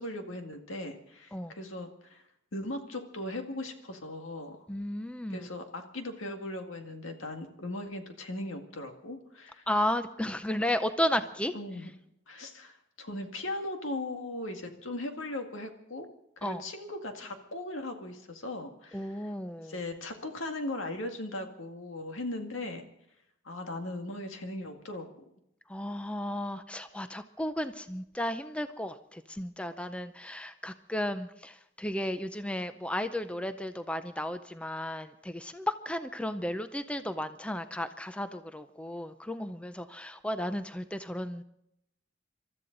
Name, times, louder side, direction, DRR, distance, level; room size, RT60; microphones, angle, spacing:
voice 1, 0.0-2.2 2.5-4.7 5.3-9.7 11.5-11.9 12.3-16.1 16.4-19.3 19.7-22.8 23.4-25.1, left 1 dB, 85° left, 4 dB, 2.0 m, -38 dB
voice 2, 4.7-5.5 9.7-11.5 16.4-16.6 18.9-19.8 25.7-41.4, left 1 dB, 5° left, 10 dB, 0.5 m, -34 dB
27.5 x 13.5 x 3.9 m, 0.79 s
head